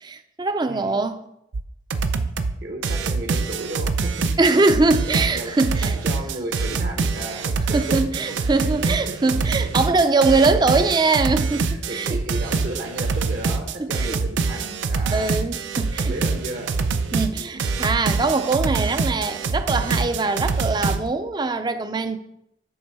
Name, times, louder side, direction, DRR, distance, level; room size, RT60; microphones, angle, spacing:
voice 1, 0.0-1.2 2.1-2.2 4.4-6.0 7.7-12.2 13.8-14.2 15.1-16.1 17.1-22.2, right 3 dB, 25° right, 0.4 m, -22 dB
voice 2, 0.7-1.1 2.6-4.6 5.0-9.0 9.4-9.7 10.5-10.6 11.7-15.3 16.0-16.7 17.4-17.6, right 1 dB, 55° right, 0.8 m, -34 dB
sound 1, 1.5-1.6 1.9-2.5 2.8-21.0, right 4 dB, 85° right, 0.5 m, -25 dB
7.8 x 3.4 x 5.4 m
head